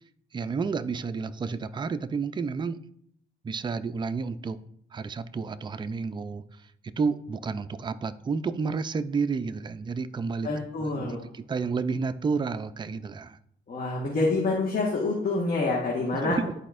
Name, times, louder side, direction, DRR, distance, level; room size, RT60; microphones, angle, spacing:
voice 1, 0.3-2.8 3.4-4.6 4.9-6.4 6.8-10.5 10.8-13.4 16.2-16.5, right 5 dB, 25° right, 11 dB, 0.4 m, -30 dB
voice 2, 10.4-11.2 13.7-16.4, left 3 dB, 45° left, -3 dB, 1.5 m, -27 dB
11.0 x 4.3 x 2.5 m, 0.69 s
cardioid pair, 90°, 20 cm